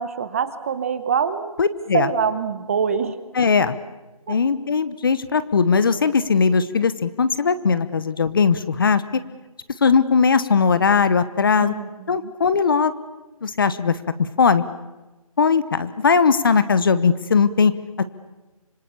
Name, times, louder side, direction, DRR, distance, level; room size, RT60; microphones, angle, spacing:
voice 1, 0.0-1.5 1.9-3.2 4.3-4.4 11.6-12.3, right 6 dB, 25° right, 12 dB, 1.1 m, -24 dB
voice 2, 1.6-2.1 3.3-3.8 4.3-9.0 9.8-11.7 12.1-12.9 13.4-14.0 14.4-14.6 15.4-18.0, left 5 dB, 35° left, 14 dB, 1.0 m, -19 dB
26.5 x 25.5 x 7.1 m, 1.1 s
figure-of-eight pair, 165°, 19 cm